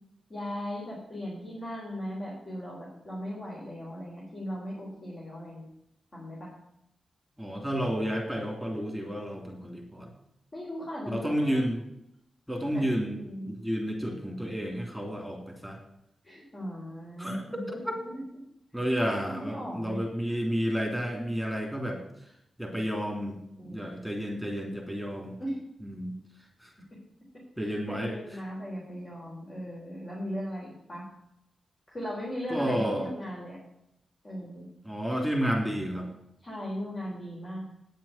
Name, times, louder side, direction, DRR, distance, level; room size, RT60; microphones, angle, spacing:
voice 1, 0.3-5.7 6.1-6.5 10.5-11.7 12.7-12.8 13.2-13.5 16.2-18.2 19.0-20.0 23.6-23.9 25.4-25.6 27.6-31.0 31.9-33.6 34.2-34.7 36.4-37.6, equal, 35° left, -5 dB, 4.2 m, -38 dB
voice 2, 7.4-10.1 11.1-11.8 12.5-13.2 13.5-15.8 17.2-17.4 18.7-22.0 22.6-23.4 23.6-25.3 25.8-26.1 26.6-26.7 27.6-28.2 32.5-33.1 34.8-36.1, equal, 5° left, 1 dB, 3.1 m, -31 dB
9.4 x 7.5 x 7.4 m, 0.80 s
wide cardioid pair, 110°, 0 cm